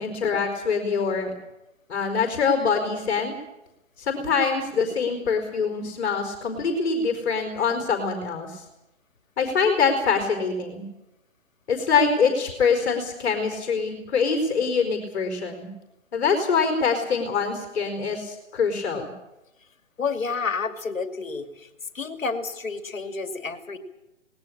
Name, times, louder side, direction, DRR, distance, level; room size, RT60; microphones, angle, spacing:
voice 1, 0.0-1.4 1.9-3.3 4.0-8.6 9.4-10.8 11.7-15.7 16.1-19.1, left 5 dB, 55° left, 5 dB, 4.8 m, -24 dB
voice 2, 20.0-21.7 21.9-23.8, left 4 dB, 80° left, 8 dB, 2.6 m, -30 dB
19.5 x 18.0 x 8.8 m, 0.93 s
hypercardioid pair, 145°, 39 cm